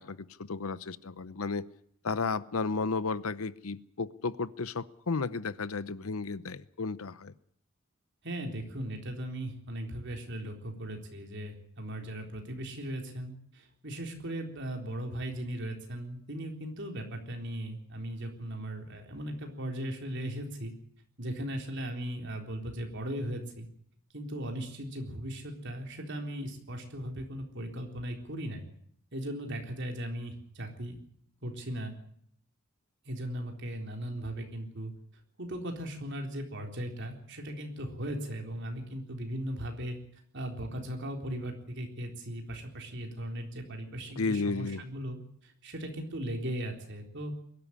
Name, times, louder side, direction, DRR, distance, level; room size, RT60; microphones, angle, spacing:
voice 1, 0.0-1.7 2.0-7.3 44.2-44.8, left 4 dB, 85° left, 17 dB, 0.8 m, -33 dB
voice 2, 8.2-20.7 21.2-23.7 24.1-28.7 29.1-31.0 31.4-31.9 33.1-34.9 35.4-40.0 40.3-47.3, right 1 dB, 55° right, 3 dB, 3.9 m, -38 dB
22.0 x 12.5 x 9.9 m, 0.67 s
head